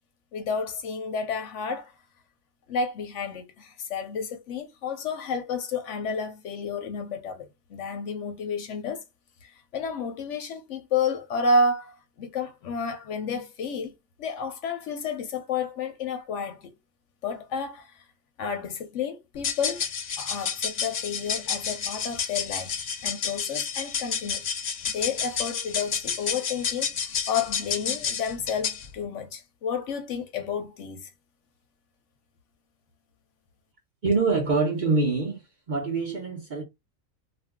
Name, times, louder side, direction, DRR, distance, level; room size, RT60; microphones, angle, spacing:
voice 1, 0.3-1.9 2.7-9.0 9.4-16.7 17.2-18.0 18.4-19.8 20.2-22.7 23.0-24.5 24.9-26.9 27.3-31.1, left 4 dB, 65° left, 0.9 m, -31 dB
sound 1, 19.4-28.9, left 6 dB, 85° left, 0.3 m, -30 dB
voice 2, 34.0-35.4 35.7-36.6, right 3 dB, 45° right, 0.6 m, -25 dB
2.5 x 2.2 x 3.4 m
omnidirectional pair, 1.4 m